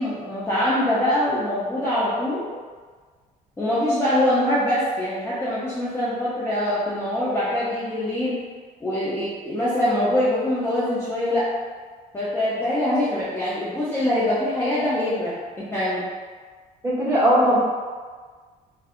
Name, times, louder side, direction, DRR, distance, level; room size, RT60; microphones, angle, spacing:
voice 1, 0.0-2.5 3.6-8.3 8.8-11.5 12.1-16.0, left 1 dB, 15° left, -11 dB, 0.6 m, -23 dB
voice 2, 16.8-17.6, equal, 15° right, -11 dB, 1.4 m, -18 dB
2.6 x 2.3 x 2.4 m, 1.5 s
cardioid pair, 110°, 17 cm